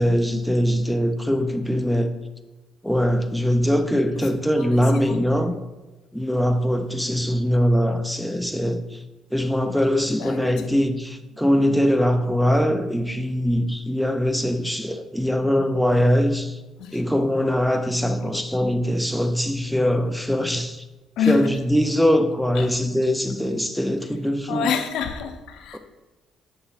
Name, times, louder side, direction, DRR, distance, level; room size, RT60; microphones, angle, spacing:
voice 1, 0.0-2.1 2.8-5.5 6.1-9.0 9.3-16.6 16.9-20.8 21.3-24.7, equal, ahead, 0.4 m, -22 dB
voice 2, 4.6-5.2 10.2-10.7 16.8-17.0 18.2-18.4 21.2-21.5 22.5-22.7 24.5-25.8, left 6 dB, 70° left, 0.6 m, -27 dB
7.0 x 2.9 x 5.6 m
cardioid pair, 170°, 0 cm